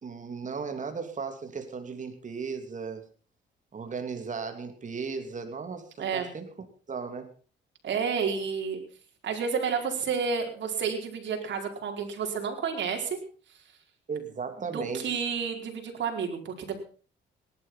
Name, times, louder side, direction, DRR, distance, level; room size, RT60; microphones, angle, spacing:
voice 1, 0.0-3.0 3.7-7.3 14.1-15.2, right 5 dB, 40° right, 6 dB, 3.1 m, -36 dB
voice 2, 7.8-8.8 9.2-13.2 14.7-16.8, right 6 dB, 65° right, 3 dB, 4.8 m, -30 dB
18.5 x 12.0 x 5.7 m, 0.39 s
cardioid pair, 90°, 20 cm